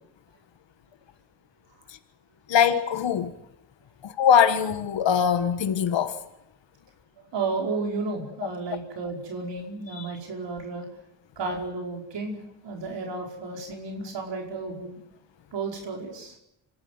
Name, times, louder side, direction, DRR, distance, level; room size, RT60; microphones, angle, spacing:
voice 1, 2.5-3.3 4.0-6.2 8.4-8.5 9.9-10.0, left 8 dB, 70° left, 1.5 m, -22 dB
voice 2, 7.3-10.9 11.4-12.4 12.6-15.0 15.5-16.4, right 3 dB, 70° right, 5.0 m, -32 dB
26.5 x 12.5 x 9.5 m
cardioid pair, 90°, 45 cm